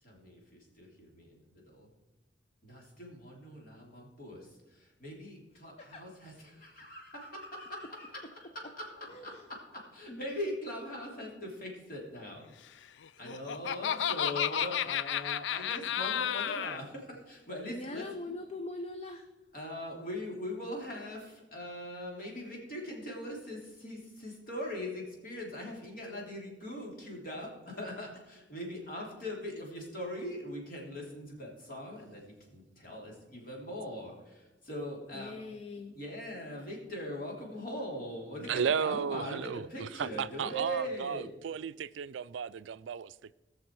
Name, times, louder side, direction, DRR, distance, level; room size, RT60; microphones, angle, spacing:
voice 1, 0.0-1.9 2.6-8.9 9.2-12.4 13.2-18.0 19.5-35.4 35.9-41.3, left 1 dB, 50° left, 3.3 m, -41 dB
voice 2, 9.1-9.5 10.1-10.2 17.7-19.3 35.1-36.0, left 2 dB, 35° left, 0.6 m, -41 dB
Laughter, 13.0-16.8, left 9 dB, 75° left, 0.4 m, -32 dB
voice 3, 38.5-43.3, right 7 dB, 85° right, 0.4 m, -34 dB
19.0 x 6.6 x 4.7 m
head